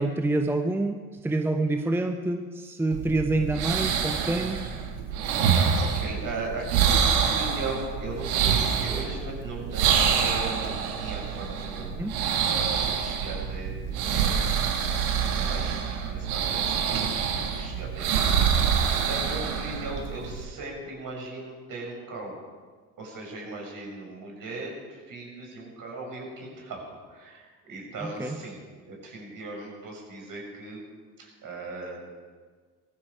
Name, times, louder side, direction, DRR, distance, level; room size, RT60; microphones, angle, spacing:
voice 1, 0.0-4.7 12.0-12.2 28.0-28.4, right 2 dB, 5° right, 6 dB, 0.9 m, -27 dB
sound 1, 2.9-20.4, right 7 dB, 75° right, 2.0 m, -26 dB
voice 2, 5.7-14.4 15.2-15.8 16.0-22.4 23.0-30.8 31.2-32.1, right 2 dB, 50° right, 0 dB, 6.6 m, -38 dB
19.5 x 14.5 x 4.9 m, 1.5 s
hypercardioid pair, 65°, 44 cm